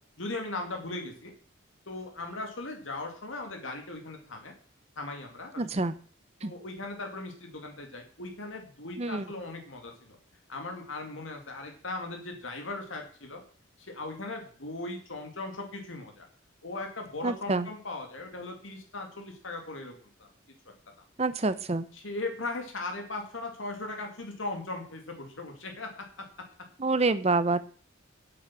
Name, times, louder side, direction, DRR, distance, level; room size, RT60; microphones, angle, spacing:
voice 1, 0.2-1.3 1.9-4.5 5.0-5.6 6.4-10.2 10.5-13.4 13.8-16.3 16.6-20.3 22.0-26.1, left 2 dB, 80° left, 3 dB, 2.4 m, -38 dB
voice 2, 5.6-5.9 6.4-6.5 9.0-9.3 17.2-17.7 21.2-21.9 26.8-27.6, right 3 dB, 35° right, 13 dB, 0.8 m, -27 dB
8.4 x 8.4 x 7.4 m, 0.43 s
head